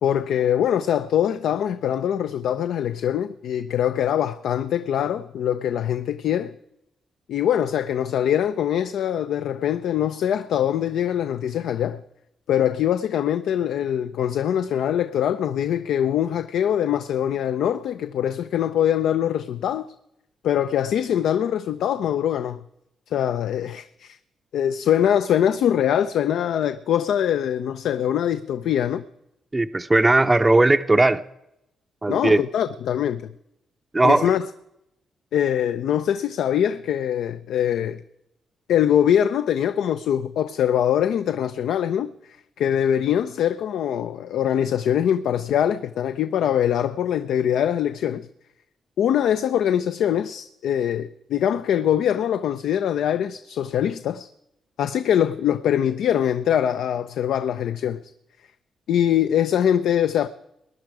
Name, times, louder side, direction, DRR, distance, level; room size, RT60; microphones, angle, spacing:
voice 1, 0.0-6.5 7.3-12.0 12.5-19.9 20.4-22.6 23.1-24.2 24.5-29.0 32.1-33.3 34.0-34.5 35.3-38.0 38.7-48.3 49.0-54.3 54.8-58.0 58.9-60.3, left 10 dB, 80° left, 0.5 m, -23 dB
voice 2, 29.5-31.2 32.0-32.4 33.9-34.3, right 2 dB, 15° right, 0.5 m, -18 dB
19.5 x 10.5 x 4.8 m
cardioid pair, 95°, 0 cm